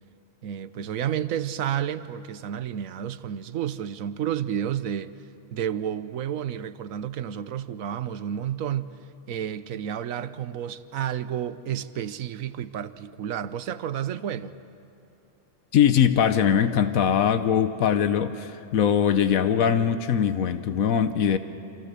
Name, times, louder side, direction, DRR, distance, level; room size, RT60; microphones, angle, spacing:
voice 1, 0.4-5.1 5.5-9.0 9.3-14.5, right 9 dB, 75° right, 1.2 m, -31 dB
voice 2, 15.7-21.4, left 8 dB, 90° left, 1.3 m, -21 dB
28.5 x 27.0 x 6.8 m
omnidirectional pair, 1.4 m